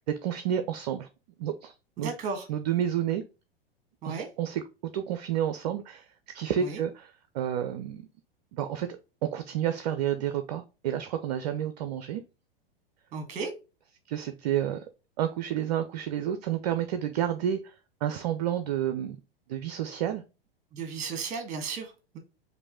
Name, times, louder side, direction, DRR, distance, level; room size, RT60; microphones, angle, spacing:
voice 1, 0.2-1.1 1.4-2.1 2.5-3.2 4.0-4.6 4.9-6.1 6.3-8.1 8.5-12.2 14.1-14.9 15.2-19.2 19.5-20.2, right 10 dB, 45° right, 0.5 m, -30 dB
voice 2, 2.0-2.5 4.0-4.3 6.6-6.8 13.1-13.5 20.7-22.2, right 5 dB, 25° right, 1.3 m, -35 dB
5.2 x 2.6 x 3.4 m
figure-of-eight pair, 95°, 30 cm